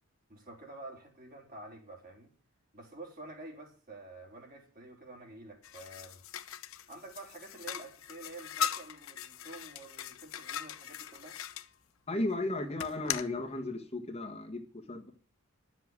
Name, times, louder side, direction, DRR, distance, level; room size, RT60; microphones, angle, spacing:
voice 1, 0.3-2.3 2.7-6.2 6.9-11.4, right 2 dB, 40° right, 3.8 m, -49 dB
sound 1, 5.6-11.7 12.8-13.3, left 8 dB, 80° left, 0.8 m, -39 dB
voice 2, 12.1-15.1, left 2 dB, 30° left, 1.6 m, -35 dB
10.5 x 7.5 x 9.6 m
head